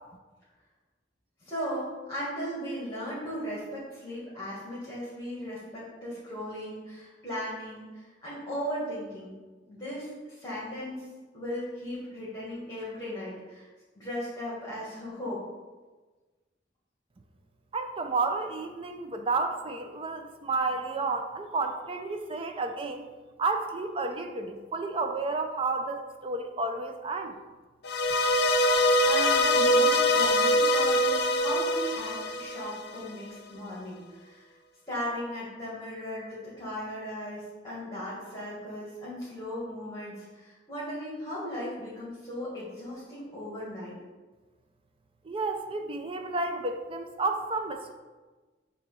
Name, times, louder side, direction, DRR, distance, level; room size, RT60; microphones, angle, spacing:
voice 1, 1.4-9.3 9.7-11.1 11.3-13.7 14.0-15.4 28.6-34.5 34.9-43.9, equal, 20° left, -9 dB, 1.8 m, -37 dB
voice 2, 17.7-23.1 23.4-27.4 45.2-48.0, right 3 dB, 30° right, 6 dB, 0.5 m, -31 dB
sound 1, 27.8-33.1, left 1 dB, 65° left, 0.6 m, -24 dB
7.6 x 3.0 x 5.4 m, 1.3 s
head